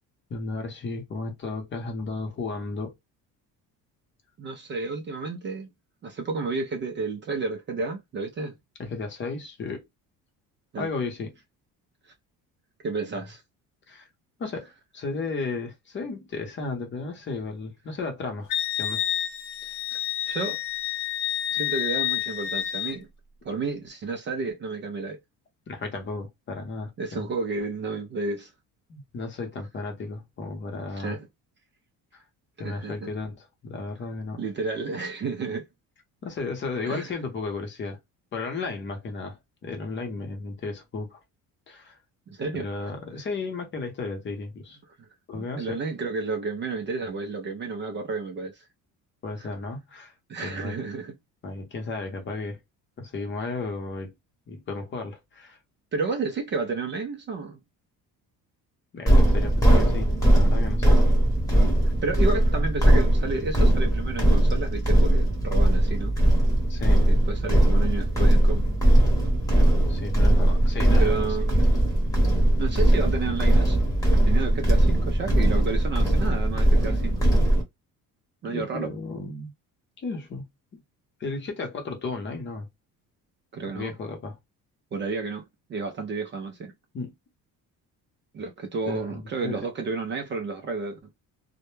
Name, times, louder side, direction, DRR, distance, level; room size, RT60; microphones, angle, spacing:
voice 1, 0.3-2.9 8.8-9.9 10.8-11.3 13.9-14.1 14.4-18.5 18.7-19.1 19.6-19.8 25.7-26.9 27.2-27.3 28.9-31.2 32.1-32.2 32.6-34.4 36.2-38.0 38.3-41.2 41.7-42.0 42.5-44.8 45.3-45.8 49.2-50.1 50.4-50.8 51.4-52.6 53.0-54.1 54.5-55.6 58.9-61.0 66.7-67.1 69.9-71.4 78.5-79.5 80.0-80.5 81.2-82.7 83.7-84.4 86.9-87.1 88.9-89.7, left 3 dB, 35° left, 0.7 m, -34 dB
voice 2, 4.4-5.7 6.0-8.6 10.7-10.9 12.0-12.1 12.8-13.4 19.9-20.6 21.5-23.1 23.4-25.2 27.0-28.5 30.9-31.3 32.6-33.1 34.4-35.7 36.8-37.1 42.3-42.7 45.3-48.7 50.3-51.1 55.9-57.6 61.9-66.2 67.1-68.7 71.0-71.7 72.6-73.8 74.3-77.2 78.4-78.9 83.5-83.9 84.9-86.7 88.3-91.0, right 4 dB, 35° right, 0.4 m, -31 dB
Wind instrument woodwind instrument, 18.5-23.0, left 12 dB, 80° left, 0.6 m, -29 dB
sound 1, 59.1-77.6, right 1 dB, 10° left, 0.9 m, -20 dB
2.1 x 2.1 x 3.1 m
cardioid pair, 140°, 35 cm